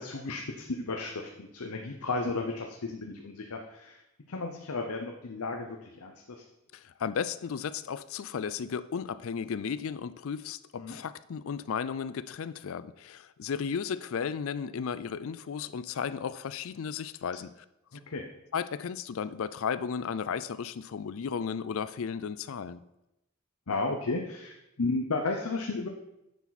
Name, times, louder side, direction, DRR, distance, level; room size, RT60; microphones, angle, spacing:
voice 1, 0.0-4.0 4.3-6.4 10.8-11.0 17.9-18.3 23.7-25.9, left 3 dB, 85° left, 3 dB, 0.8 m, -34 dB
voice 2, 6.7-17.5 18.5-22.8, left 6 dB, 65° left, 15 dB, 0.4 m, -34 dB
10.0 x 7.0 x 4.1 m, 0.90 s
head